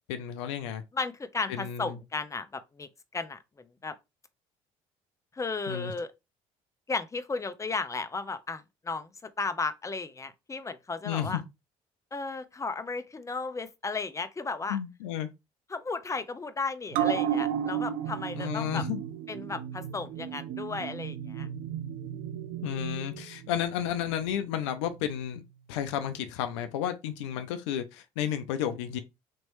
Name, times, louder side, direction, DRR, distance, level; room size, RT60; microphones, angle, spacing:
voice 1, 0.1-0.8 1.5-2.0 5.7-5.9 11.0-11.4 14.7-15.3 18.4-19.0 22.6-25.4 25.7-29.0, left 10 dB, 90° left, 0.6 m, -32 dB
voice 2, 0.9-3.4 3.8-3.9 5.4-6.1 6.9-11.4 12.1-14.8 15.7-18.8 19.3-21.5, left 4 dB, 20° left, 0.7 m, -34 dB
sound 1, 16.9-23.8 24.2-24.3, right 9 dB, 75° right, 0.6 m, -33 dB
4.3 x 3.1 x 3.1 m
hypercardioid pair, 65°, 15 cm